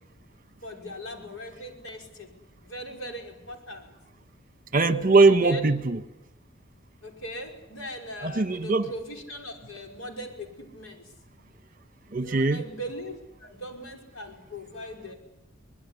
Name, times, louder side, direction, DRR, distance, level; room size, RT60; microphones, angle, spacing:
voice 1, 0.6-2.3 2.6-3.9 5.4-5.6 7.0-11.0 12.2-13.1 13.4-15.2, equal, 80° left, 3 dB, 5.7 m, -39 dB
voice 2, 4.7-6.0 8.2-8.9 12.1-12.6, right 3 dB, 40° right, 10 dB, 1.4 m, -21 dB
24.0 x 21.0 x 9.9 m, 0.89 s
head